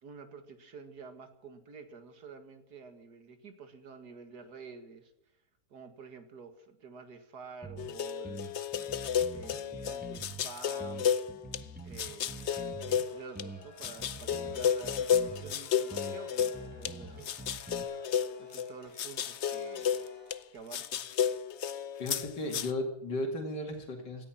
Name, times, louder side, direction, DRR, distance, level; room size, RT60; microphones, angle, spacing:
voice 1, 0.0-5.1 5.7-8.5 9.3-11.1 11.8-17.8 18.4-20.0 20.5-21.1, right 5 dB, 65° right, 8 dB, 2.4 m, -49 dB
sound 1, 7.6-7.9 8.2-10.4 10.8-13.0 13.3-15.6 15.9-17.8, right 2 dB, 5° right, 1.4 m, -45 dB
sound 2, 7.8-11.6 12.0-13.5 13.8-16.9 17.2-20.4 20.7-22.7, left 8 dB, 55° left, 0.8 m, -32 dB
Chime, 12.8-20.4, left 1 dB, 25° left, 8.2 m, -56 dB
voice 2, 22.0-24.2, left 1 dB, 90° left, 2 dB, 2.9 m, -35 dB
18.0 x 13.5 x 5.8 m, 0.81 s
omnidirectional pair, 1.8 m